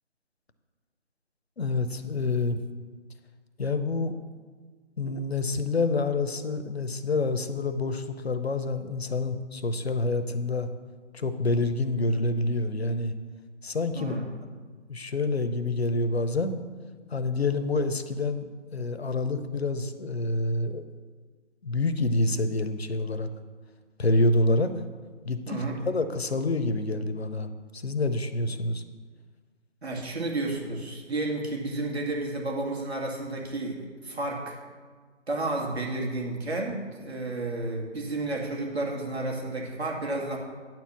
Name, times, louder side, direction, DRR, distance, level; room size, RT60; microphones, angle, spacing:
voice 1, 1.6-2.6 3.6-4.1 5.0-10.7 11.1-13.1 13.6-14.1 14.9-16.6 17.1-20.8 21.6-23.3 24.0-24.7 25.2-25.6 25.9-28.8, left 2 dB, 55° left, 9 dB, 0.8 m, -27 dB
voice 2, 13.9-14.3 25.5-25.8 29.8-33.8 34.0-34.6 35.3-40.4, right 2 dB, 60° right, -1 dB, 2.2 m, -31 dB
9.8 x 4.6 x 7.2 m, 1.5 s
figure-of-eight pair, 175°, 37 cm